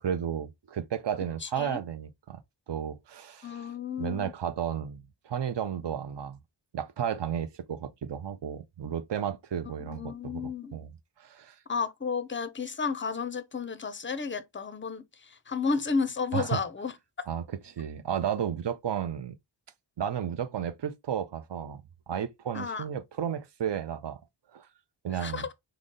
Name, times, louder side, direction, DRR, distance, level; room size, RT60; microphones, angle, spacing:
voice 1, 0.0-2.4 2.7-3.7 4.0-6.4 6.7-10.9 11.2-11.6 16.3-16.6 17.3-19.4 20.0-24.2 24.5-24.7 25.0-25.4, right 8 dB, 65° right, 0.6 m, -33 dB
voice 2, 1.4-1.8 3.4-4.3 9.8-10.8 11.7-16.9 22.5-22.8 25.1-25.5, left 5 dB, 25° left, 0.4 m, -32 dB
3.9 x 2.0 x 3.6 m
wide cardioid pair, 90°, 47 cm